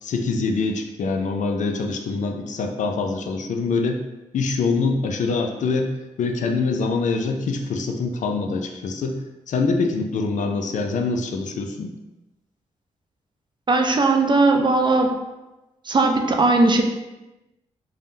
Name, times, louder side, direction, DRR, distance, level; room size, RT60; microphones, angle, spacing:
voice 1, 0.0-4.0 4.3-9.2 9.5-11.9, left 4 dB, 60° left, 4 dB, 0.4 m, -24 dB
voice 2, 13.7-15.2 15.9-16.8, right 3 dB, 35° right, 3 dB, 0.5 m, -18 dB
3.4 x 2.1 x 2.7 m, 1.0 s
supercardioid pair, 45°, 14 cm